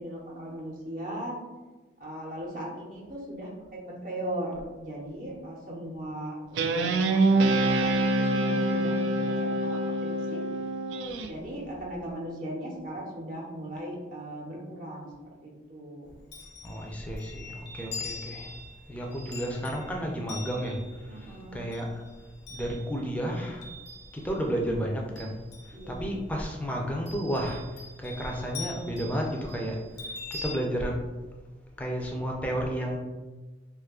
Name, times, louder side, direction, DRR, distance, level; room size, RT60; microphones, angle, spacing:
voice 1, 0.0-1.4 2.0-3.5 3.9-10.5 11.2-15.1 15.4-16.1 21.1-21.7 25.7-26.0, right 1 dB, 45° right, -3 dB, 0.6 m, -38 dB
Guitar, 6.6-11.3, right 2 dB, 85° right, 0.3 m, -25 dB
Chime, 16.1-24.5 24.9-26.3 27.1-30.6, left 3 dB, 65° left, 0.6 m, -43 dB
voice 2, 16.6-18.6 18.9-22.0 22.5-23.7 24.1-25.4 25.7-31.1 31.8-33.0, equal, 10° left, 0 dB, 0.4 m, -32 dB
2.6 x 2.4 x 3.6 m, 1.2 s
head